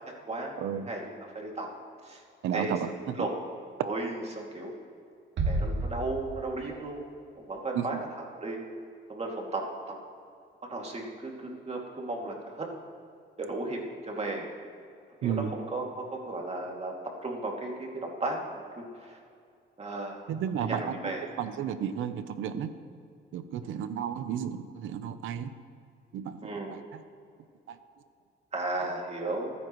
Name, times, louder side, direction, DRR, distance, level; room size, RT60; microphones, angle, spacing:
voice 1, 0.2-1.7 2.0-2.2 2.5-2.7 3.2-3.3 3.8-4.7 5.5-7.0 7.4-8.6 9.1-9.9 10.7-12.7 13.4-13.8 14.1-14.5 15.2-16.9 17.2-19.2 19.8-20.2 20.6-21.2 26.4-26.7 28.5-29.5, right 2 dB, 30° right, 0 dB, 2.6 m, -35 dB
voice 2, 2.4-3.1 7.7-8.0 15.2-15.5 20.3-21.1 21.4-22.7 23.3-25.5 26.1-26.4 26.7-26.8, right 9 dB, 85° right, 10 dB, 0.9 m, -32 dB
sound 1, 5.4-7.0, right 2 dB, 65° right, 2.1 m, -31 dB
27.0 x 9.8 x 3.2 m, 2.3 s
cardioid pair, 90°, 20 cm